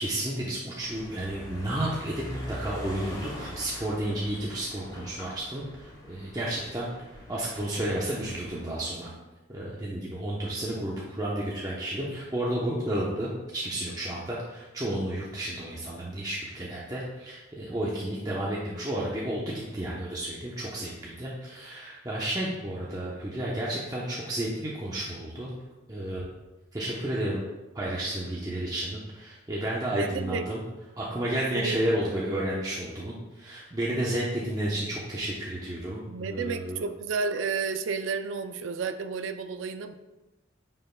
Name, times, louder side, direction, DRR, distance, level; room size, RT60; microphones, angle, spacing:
voice 1, 0.0-6.9 7.3-9.1 9.5-25.5 25.9-26.3 26.7-27.4 27.7-30.6 31.0-36.8, right 1 dB, 20° right, -5 dB, 0.8 m, -32 dB
sound 1, 0.8-8.6, equal, 25° left, 2.3 m, -43 dB
voice 2, 29.9-30.5 31.5-31.8 36.1-40.0, right 5 dB, 80° right, 9 dB, 0.4 m, -31 dB
9.5 x 5.5 x 2.2 m, 1.1 s
head